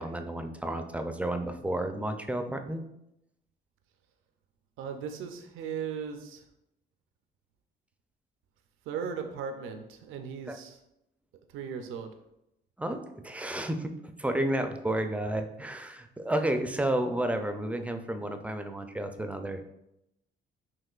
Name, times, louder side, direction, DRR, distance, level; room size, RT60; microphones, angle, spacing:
voice 1, 0.0-2.9 10.5-10.6 12.8-19.6, right 1 dB, 5° right, 6 dB, 0.4 m, -31 dB
voice 2, 4.8-6.4 8.9-10.8 11.5-12.1, right 6 dB, 85° right, 6 dB, 0.5 m, -37 dB
5.6 x 3.0 x 2.4 m, 0.84 s
cardioid pair, 90°, 20 cm